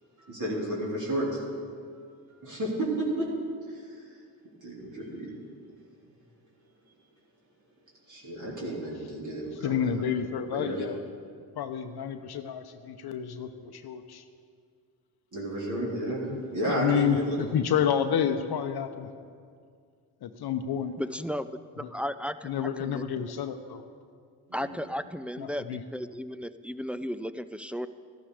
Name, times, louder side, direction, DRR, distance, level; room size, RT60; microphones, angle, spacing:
voice 1, 0.2-1.4 2.4-4.2 4.6-5.3 8.1-10.1 10.5-10.8 15.3-17.4 24.5-24.7, right 1 dB, 40° right, -5 dB, 3.8 m, -32 dB
voice 2, 9.6-11.0 11.6-14.2 16.3-16.4 16.7-19.1 20.2-20.9 21.8-21.9 22.4-23.8 25.4-25.8, left 8 dB, 60° left, 7 dB, 0.8 m, -29 dB
voice 3, 21.0-21.5 21.8-22.5 22.8-23.0 24.5-27.9, equal, 5° right, 11 dB, 0.4 m, -34 dB
13.5 x 11.5 x 5.0 m, 2.1 s
supercardioid pair, 65°, 44 cm